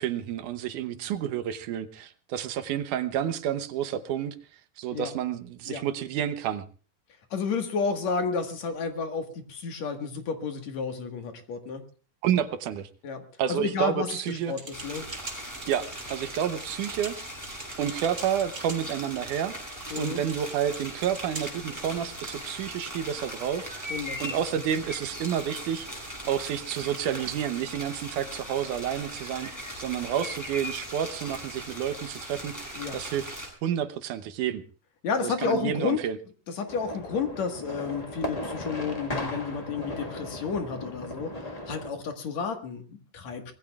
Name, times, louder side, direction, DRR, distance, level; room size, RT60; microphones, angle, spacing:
voice 1, 0.0-4.4 4.8-6.6 12.2-12.9 13.4-14.5 15.7-17.1 17.8-19.5 20.0-23.9 24.2-25.9 26.3-33.3 33.6-34.6 35.2-36.2, right 9 dB, 75° right, 11 dB, 2.3 m, -30 dB
voice 2, 7.3-11.8 13.0-13.2 13.5-15.0 19.9-20.2 23.9-24.2 24.5-24.6 32.8-33.0 35.0-36.0 36.6-41.3 41.7-43.5, left 5 dB, 60° left, 5 dB, 2.7 m, -31 dB
sound 1, 14.2-21.9, right 3 dB, 25° right, 3.3 m, -44 dB
sound 2, 14.7-33.5, equal, 5° left, 7.2 m, -39 dB
sound 3, 36.7-41.9, left 1 dB, 85° left, 0.3 m, -36 dB
24.5 x 20.0 x 2.4 m, 0.38 s
omnidirectional pair, 3.7 m